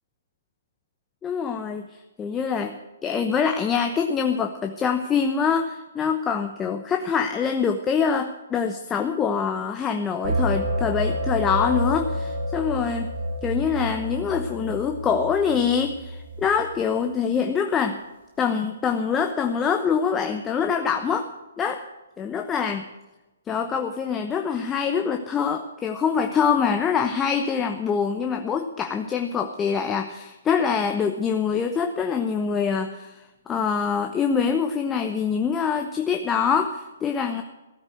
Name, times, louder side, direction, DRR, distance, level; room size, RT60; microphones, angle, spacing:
voice 1, 1.2-13.1 13.4-18.0 18.4-21.3 21.6-21.8 22.2-22.8 23.5-37.4, left 6 dB, 15° left, 5 dB, 0.9 m, -25 dB
sound 1, 10.2-16.8, equal, 55° right, 2.9 m, -29 dB
15.5 x 8.9 x 7.8 m, 1.0 s
hypercardioid pair, 135°, 0 cm